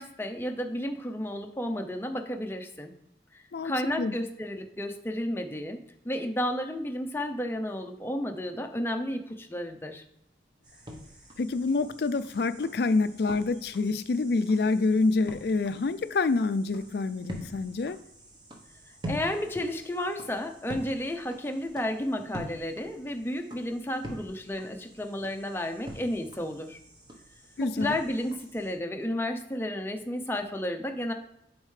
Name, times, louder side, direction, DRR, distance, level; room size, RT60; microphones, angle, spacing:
voice 1, 0.0-2.9 3.3-5.8 6.0-10.0 19.0-26.8 27.6-31.1, left 1 dB, 15° left, 4 dB, 0.6 m, -32 dB
sound 1, 10.6-28.7, equal, 25° right, 1.0 m, -45 dB
voice 2, 11.4-18.0 27.6-28.0, left 3 dB, 60° left, 13 dB, 0.4 m, -27 dB
8.8 x 4.3 x 3.3 m, 0.79 s
head